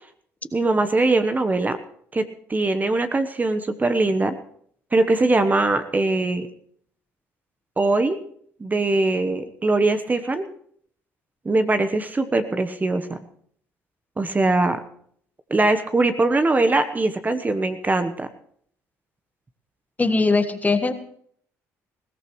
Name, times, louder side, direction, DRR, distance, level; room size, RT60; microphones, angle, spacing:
voice 1, 0.5-1.8 2.1-4.3 4.9-6.5 7.8-8.2 8.6-10.5 11.4-13.2 14.2-14.8 15.5-18.3, right 2 dB, 25° right, 9 dB, 1.1 m, -21 dB
voice 2, 20.0-20.9, left 3 dB, 25° left, 9 dB, 1.5 m, -20 dB
20.5 x 16.5 x 3.2 m, 0.63 s
supercardioid pair, 65°, 7 cm